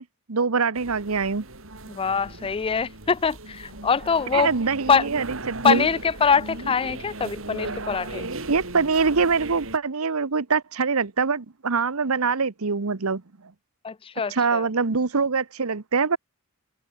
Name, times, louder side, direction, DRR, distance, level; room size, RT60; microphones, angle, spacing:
voice 1, 0.0-1.4 4.3-5.9 8.5-13.2 14.3-16.2, right 4 dB, 85° right, 1.0 m, -24 dB
sound 1, 0.8-9.8, right 2 dB, 70° right, 5.2 m, -37 dB
voice 2, 1.9-4.5 4.9-5.1 5.6-8.3 13.8-14.7, left 6 dB, 25° left, 0.4 m, -23 dB
head